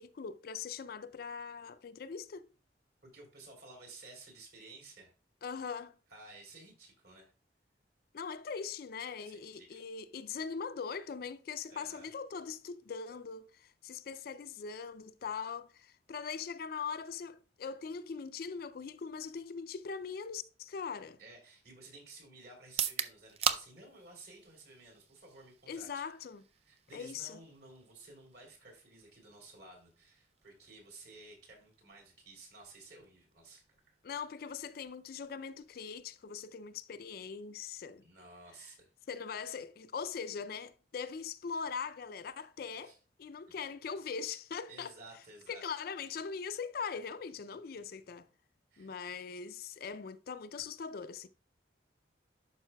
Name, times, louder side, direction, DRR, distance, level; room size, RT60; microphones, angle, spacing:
voice 1, 0.0-2.5 5.4-6.0 8.1-21.2 25.7-26.4 26.9-27.4 34.0-38.0 39.1-42.9 43.2-44.9 45.5-48.3 48.8-51.3, left 6 dB, 50° left, 0.4 m, -41 dB
voice 2, 3.0-5.1 6.1-7.3 9.2-9.8 11.7-12.1 21.2-26.0 26.6-33.9 38.0-38.9 42.8-43.0 43.5-43.6 44.7-45.6 48.7-48.9, right 2 dB, 55° right, 3.1 m, -54 dB
sound 1, 22.6-36.5, right 8 dB, 35° right, 0.4 m, -43 dB
11.5 x 5.3 x 2.2 m
head